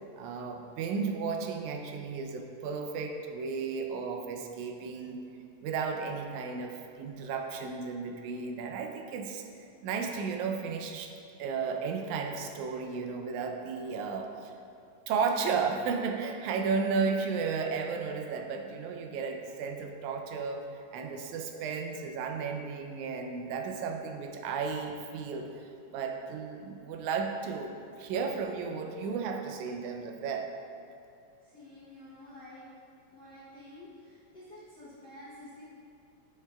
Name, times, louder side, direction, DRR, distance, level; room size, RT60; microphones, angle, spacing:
voice 1, 0.2-5.3 5.6-9.4 9.8-11.1 11.4-14.5 15.1-30.5, right 5 dB, 90° right, 4 dB, 2.0 m, -34 dB
voice 2, 31.4-32.6 33.1-35.6, left 1 dB, 65° left, -10 dB, 1.0 m, -50 dB
9.1 x 6.5 x 2.3 m, 2.6 s
omnidirectional pair, 3.3 m